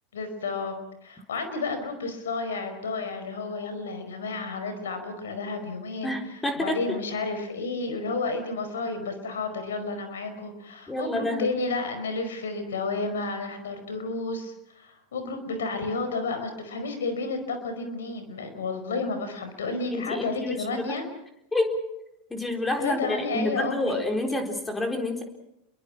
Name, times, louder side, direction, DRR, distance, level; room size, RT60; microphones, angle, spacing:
voice 1, 0.1-0.7 1.0-21.1 22.8-24.0, left 3 dB, 75° left, 8 dB, 5.0 m, -31 dB
voice 2, 6.0-7.0 10.9-11.5 19.9-20.9 21.5-21.8 22.3-25.2, left 1 dB, 15° left, 4 dB, 4.1 m, -28 dB
29.0 x 22.5 x 6.0 m, 0.84 s
hypercardioid pair, 90°, 0 cm